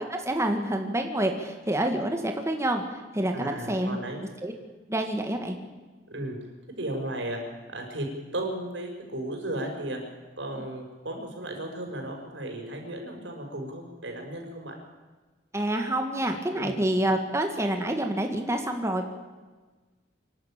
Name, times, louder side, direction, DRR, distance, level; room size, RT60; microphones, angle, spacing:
voice 1, 0.0-4.0 4.4-4.5 4.9-5.6 15.5-19.1, right 1 dB, 15° right, 4 dB, 1.9 m, -27 dB
voice 2, 3.3-4.2 6.1-6.4 6.8-7.4 7.7-8.1 8.3-10.0 10.4-14.8 16.5-16.8, right 1 dB, 90° right, 3 dB, 5.8 m, -35 dB
26.5 x 12.0 x 9.0 m, 1.3 s
head